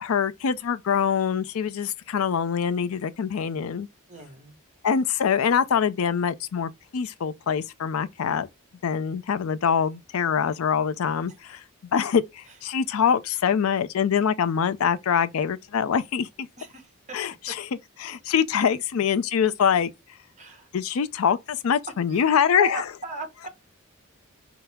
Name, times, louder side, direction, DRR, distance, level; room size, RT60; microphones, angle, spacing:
voice 1, 0.0-3.9 4.8-8.5 8.8-11.6 11.9-16.5 17.1-17.7 18.0-19.9 20.7-22.8, left 7 dB, 70° left, 0.4 m, -24 dB
voice 2, 4.1-4.6 12.5-12.6 16.6-17.2 20.4-20.7 22.1-23.5, right 2 dB, 35° right, 1.2 m, -37 dB
5.6 x 2.0 x 3.4 m
head